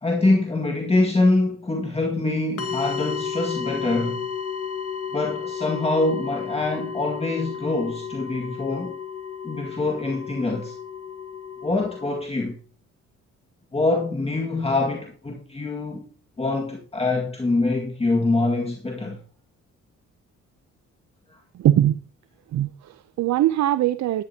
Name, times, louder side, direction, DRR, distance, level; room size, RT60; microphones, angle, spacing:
voice 1, 0.0-4.3 5.1-9.0 9.4-10.8 11.6-12.6 13.7-16.1 16.4-19.2, left 2 dB, 20° left, 1.9 m, -24 dB
sound 1, 2.6-12.2, left 7 dB, 50° left, 1.4 m, -33 dB
voice 2, 21.5-22.0 22.5-24.2, right 12 dB, 65° right, 0.6 m, -21 dB
13.5 x 11.0 x 2.8 m
cardioid pair, 90°, 30 cm